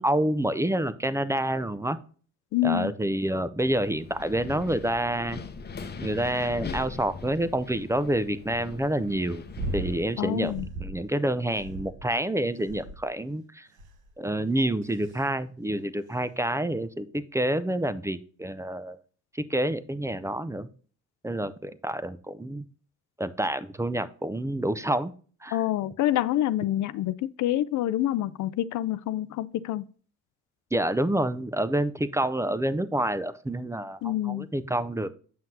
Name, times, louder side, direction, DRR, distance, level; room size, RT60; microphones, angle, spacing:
voice 1, 0.0-2.0 2.6-5.4 6.0-9.4 9.7-10.5 10.8-13.7 14.2-19.0 19.3-20.7 21.2-22.6 23.2-25.1 25.4-25.6 30.7-35.1, right 1 dB, 10° right, 0.5 m, -28 dB
voice 2, 2.5-2.9 10.2-10.7 25.5-29.9 34.0-34.5, left 13 dB, 75° left, 0.5 m, -27 dB
Wind, 3.6-10.5, left 4 dB, 35° left, 0.8 m, -41 dB
sound 1, 9.5-10.0 10.4-11.0 11.5-12.2 12.7-13.1 13.8-14.1 14.8-15.2 16.1-16.2, right 2 dB, 90° right, 1.3 m, -36 dB
7.6 x 5.8 x 2.7 m
cardioid pair, 90°, 30 cm